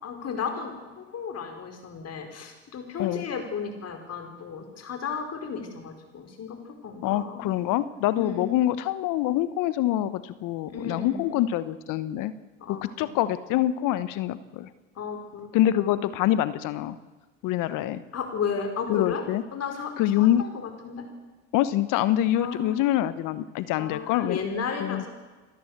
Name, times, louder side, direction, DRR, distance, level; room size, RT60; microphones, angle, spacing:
voice 1, 0.0-7.5 8.2-8.7 10.7-11.3 12.6-13.2 15.0-15.9 18.1-19.2 19.5-21.0 22.3-22.9 23.8-25.1, left 6 dB, 50° left, 5 dB, 4.9 m, -34 dB
voice 2, 7.0-12.3 12.7-14.7 15.5-17.0 17.4-18.0 18.9-19.4 20.0-20.4 21.5-24.4 24.8-25.0, left 13 dB, 65° left, 15 dB, 1.2 m, -25 dB
28.5 x 12.0 x 8.1 m, 1.3 s
supercardioid pair, 75°, 33 cm